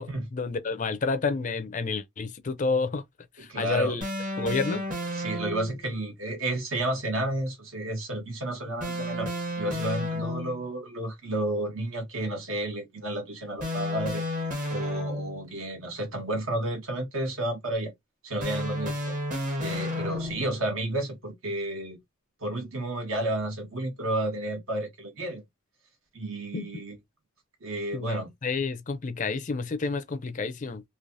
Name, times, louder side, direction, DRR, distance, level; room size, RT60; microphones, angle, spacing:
voice 1, 0.0-3.0 3.4-4.0 4.4-4.8 26.5-26.7 27.9-30.8, left 4 dB, 35° left, 0.5 m, -29 dB
voice 2, 3.5-4.0 4.7-4.8 5.1-9.3 9.6-14.2 14.7-17.9 18.2-19.2 19.6-22.0 22.4-25.4 26.1-26.9 27.6-28.3, right 1 dB, 70° right, 1.4 m, -31 dB
sound 1, 4.0-5.8 8.8-10.7 13.6-15.5 18.4-20.6, left 1 dB, 40° right, 1.1 m, -32 dB
3.2 x 2.8 x 2.6 m
head